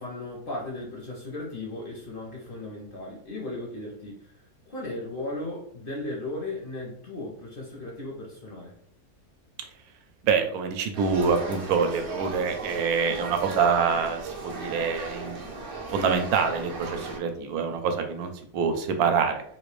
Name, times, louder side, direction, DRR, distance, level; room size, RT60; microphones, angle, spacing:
voice 1, 0.0-4.3 4.7-8.7, left 2 dB, 55° left, -2 dB, 0.6 m, -36 dB
voice 2, 10.2-15.5 15.9-19.4, right 5 dB, 75° right, 6 dB, 1.0 m, -26 dB
sound 1, 10.9-17.2, right 3 dB, 50° right, 0.7 m, -37 dB
3.0 x 2.5 x 3.1 m, 0.64 s
omnidirectional pair, 1.6 m